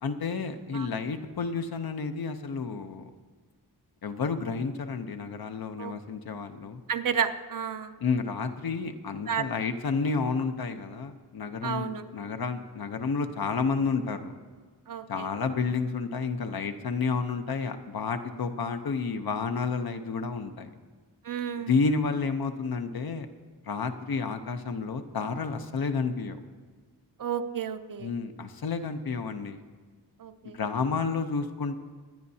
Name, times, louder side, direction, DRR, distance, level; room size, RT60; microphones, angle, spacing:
voice 1, 0.0-3.1 4.0-6.8 8.0-14.3 15.1-20.7 21.6-23.3 23.6-26.4 28.0-29.6 30.5-31.8, left 4 dB, 60° left, 7 dB, 0.9 m, -30 dB
voice 2, 6.9-8.0 9.3-9.4 11.6-12.0 14.9-15.3 21.2-21.7 27.2-28.1 30.2-30.6, right 7 dB, 55° right, 9 dB, 0.6 m, -31 dB
24.5 x 9.6 x 2.8 m, 1.6 s
wide cardioid pair, 160°, 41 cm